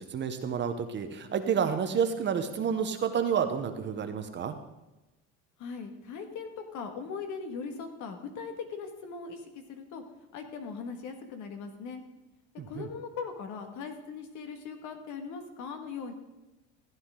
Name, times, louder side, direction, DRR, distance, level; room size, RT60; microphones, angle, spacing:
voice 1, 0.0-4.5 12.6-12.9, right 7 dB, 35° right, 8 dB, 1.0 m, -30 dB
voice 2, 5.6-10.0 10.3-12.0 12.7-16.1, left 5 dB, 60° left, 5 dB, 1.8 m, -39 dB
14.5 x 9.4 x 3.8 m, 1.0 s
cardioid pair, 120°, 34 cm